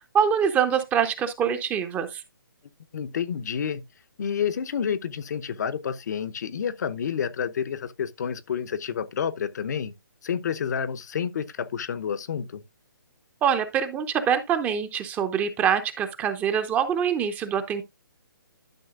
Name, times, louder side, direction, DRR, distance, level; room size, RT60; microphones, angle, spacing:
voice 1, 0.1-2.2 13.4-17.8, right 8 dB, 15° right, 0.7 m, -24 dB
voice 2, 2.9-3.8 4.2-9.9 10.2-12.6, left 7 dB, 55° left, 0.8 m, -29 dB
11.5 x 6.3 x 2.4 m
hypercardioid pair, 145°, 12 cm